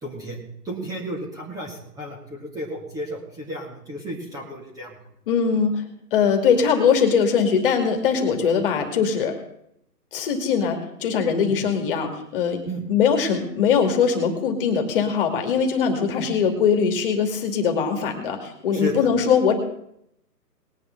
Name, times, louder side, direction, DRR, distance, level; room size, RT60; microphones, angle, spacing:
voice 1, 0.0-4.9 11.5-11.6 12.7-12.8 18.7-19.1, right 1 dB, 5° right, -2 dB, 2.0 m, -33 dB
voice 2, 5.3-5.8 6.1-9.4 10.1-12.6 12.9-19.6, left 6 dB, 35° left, 4 dB, 2.3 m, -21 dB
20.5 x 8.9 x 3.8 m, 0.73 s
figure-of-eight pair, 145°, 48 cm